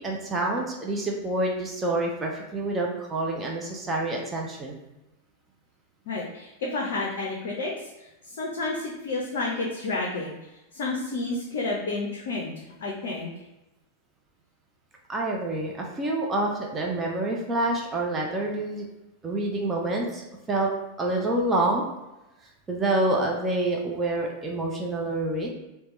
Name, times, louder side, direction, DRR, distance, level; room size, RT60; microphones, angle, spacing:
voice 1, 0.0-4.8 15.1-18.9 19.2-20.7 21.0-21.8 22.4-25.5, right 2 dB, 20° right, -1 dB, 0.4 m, -27 dB
voice 2, 6.1-10.3 10.7-12.5 12.8-13.3, left 2 dB, 55° left, -2 dB, 0.4 m, -30 dB
2.8 x 2.1 x 2.9 m, 0.99 s
figure-of-eight pair, 90°, 0 cm